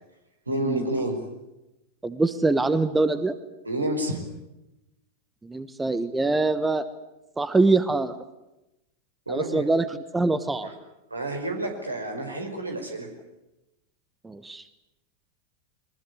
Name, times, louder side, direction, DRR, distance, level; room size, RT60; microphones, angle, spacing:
voice 1, 0.5-1.2 3.7-4.2 9.3-9.7 10.6-10.7 11.1-13.1, right 1 dB, 80° right, 4 dB, 5.2 m, -29 dB
voice 2, 2.0-3.3 5.4-6.8 7.4-8.2 9.3-9.8 10.1-10.7 14.2-14.6, right 3 dB, 10° right, 13 dB, 1.2 m, -24 dB
23.5 x 21.0 x 9.7 m, 0.95 s
figure-of-eight pair, 90°, 0 cm